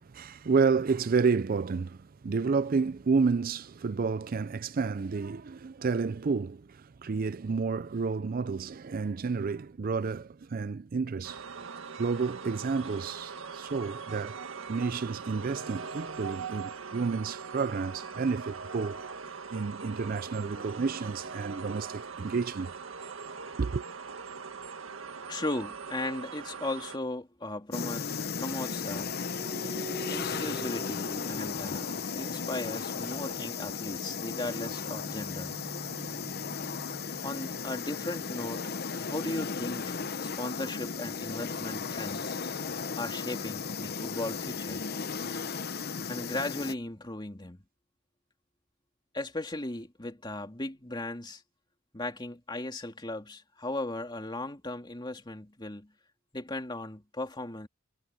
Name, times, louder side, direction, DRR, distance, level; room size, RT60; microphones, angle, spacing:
voice 1, 0.0-14.4 14.7-19.1 19.5-22.8 23.1-23.2 23.6-23.8, right 5 dB, 45° right, 0.4 m, -30 dB
sound 1, 11.2-27.0, right 5 dB, 85° right, 1.8 m, -41 dB
voice 2, 25.3-29.1 30.1-31.9 32.2-35.6 37.2-38.7 39.0-42.4 43.0-44.8 46.1-47.6 49.1-51.4 51.9-55.9 56.3-57.7, left 2 dB, 20° left, 2.4 m, -37 dB
sound 2, 27.7-46.7, left 5 dB, 50° left, 0.9 m, -35 dB
sound 3, 29.4-33.1 34.5-38.2 39.0-40.3, right 1 dB, 20° right, 0.9 m, -45 dB
head